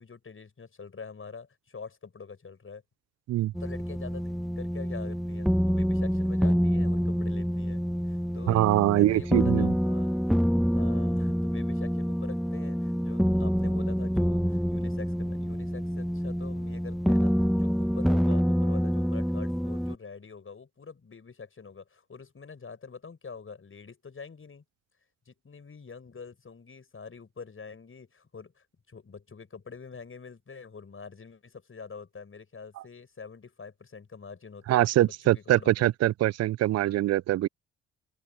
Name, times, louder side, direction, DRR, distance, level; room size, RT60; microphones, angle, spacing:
voice 1, 0.0-2.8 3.6-8.6 8.9-24.6 25.3-35.9, left 5 dB, 40° left, 6.5 m, -45 dB
sound 1, 3.5-20.0, equal, ahead, 1.3 m, -27 dB
voice 2, 8.5-9.7 34.7-37.5, right 14 dB, 50° right, 0.5 m, -23 dB
open air
hypercardioid pair, 40°, 33 cm